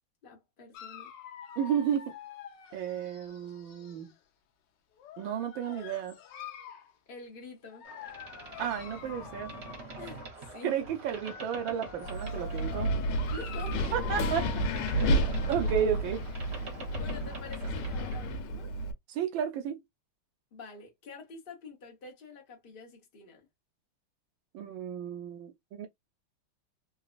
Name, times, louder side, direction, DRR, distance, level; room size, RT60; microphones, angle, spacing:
voice 1, 0.2-1.1 7.1-7.9 10.0-10.8 13.3-14.3 17.0-18.8 20.5-23.4, left 4 dB, 50° left, 0.6 m, -47 dB
Dog, 0.7-4.1 5.0-6.9 7.7-10.3 11.0-15.9, left 9 dB, 70° left, 1.2 m, -47 dB
voice 2, 1.6-2.2 2.7-4.1 5.2-6.2 8.6-9.5 10.6-12.9 13.9-14.5 14.9-16.2 19.1-19.8 24.5-25.9, right 8 dB, 75° right, 1.3 m, -32 dB
Boat Water vehicle, 7.8-18.4, right 3 dB, 40° right, 1.0 m, -46 dB
Wind, 12.1-18.9, right 1 dB, 85° left, 1.6 m, -31 dB
3.9 x 2.3 x 2.4 m
omnidirectional pair, 2.3 m